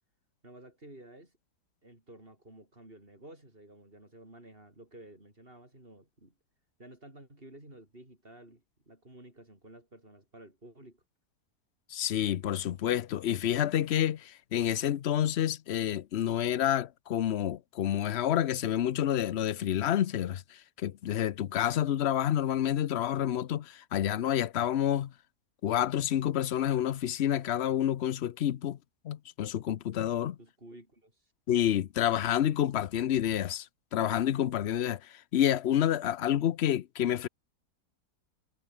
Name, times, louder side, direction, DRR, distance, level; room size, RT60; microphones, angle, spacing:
voice 1, 0.4-1.3 1.8-6.3 6.8-11.0 30.4-31.3, right 1 dB, 35° right, 7.1 m, -52 dB
voice 2, 11.9-25.1 25.6-28.8 29.0-30.4 31.5-37.3, left 11 dB, 55° left, 0.7 m, -29 dB
omnidirectional pair, 1.8 m